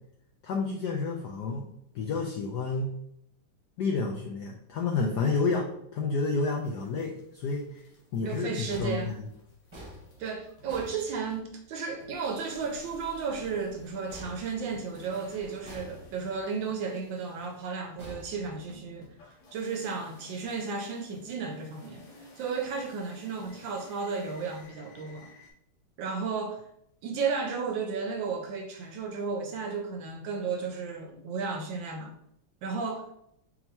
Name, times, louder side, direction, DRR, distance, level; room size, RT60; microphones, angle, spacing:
voice 1, 0.4-1.7 1.9-2.9 3.8-7.8 8.1-9.2, left 4 dB, 85° left, 0.9 m, -30 dB
sound 1, 6.3-25.5, left 1 dB, 65° left, 1.8 m, -55 dB
voice 2, 8.3-9.1 10.2-19.1 19.5-25.3 26.0-26.7 27.0-32.1 32.6-33.1, right 5 dB, 75° right, 1.2 m, -33 dB
sound 2, 8.7-11.7 14.1-15.2 15.6-16.5 18.0-19.1, right 1 dB, 20° right, 0.8 m, -48 dB
4.5 x 3.8 x 2.8 m
omnidirectional pair, 2.4 m